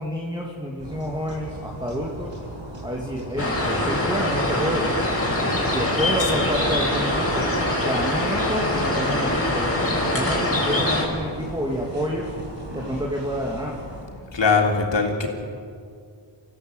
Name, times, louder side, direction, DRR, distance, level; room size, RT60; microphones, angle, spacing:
voice 1, 0.0-2.3 2.8-4.9 5.7-9.6 10.0-12.3 12.7-13.8, equal, 10° right, -2 dB, 2.8 m, -29 dB
sound 1, 0.8-14.1, right 1 dB, 70° right, 7.4 m, -37 dB
sound 2, 3.4-11.1, left 1 dB, 30° left, 5.4 m, -23 dB
voice 2, 14.1-15.3, left 4 dB, 70° left, 1 dB, 3.4 m, -21 dB
25.5 x 16.0 x 8.2 m, 2.3 s
wide cardioid pair, 75°, 45 cm